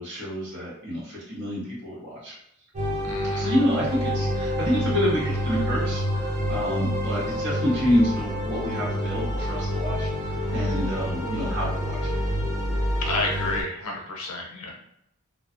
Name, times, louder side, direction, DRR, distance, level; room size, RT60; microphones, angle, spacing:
voice 1, 0.0-2.4 3.3-12.1, equal, 55° right, -7 dB, 1.1 m, -28 dB
sound 1, 2.7-13.6, equal, 30° right, 0.4 m, -27 dB
voice 2, 3.0-3.5 13.0-14.7, left 2 dB, 80° left, 0 dB, 0.6 m, -30 dB
2.4 x 2.2 x 2.5 m, 0.77 s
head